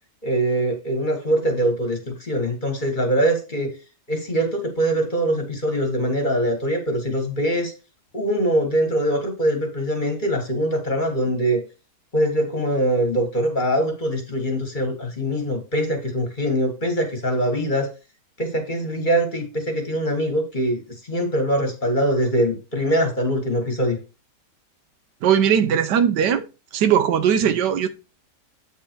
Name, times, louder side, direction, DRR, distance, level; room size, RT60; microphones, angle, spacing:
voice 1, 0.2-3.7 4.1-7.7 8.1-11.6 12.1-17.9 18.4-20.8 21.1-24.0, right 1 dB, 30° left, 1.6 m, -23 dB
voice 2, 25.2-26.5 26.7-27.9, right 8 dB, 85° right, 1.4 m, -19 dB
8.1 x 4.6 x 4.5 m
omnidirectional pair, 1.8 m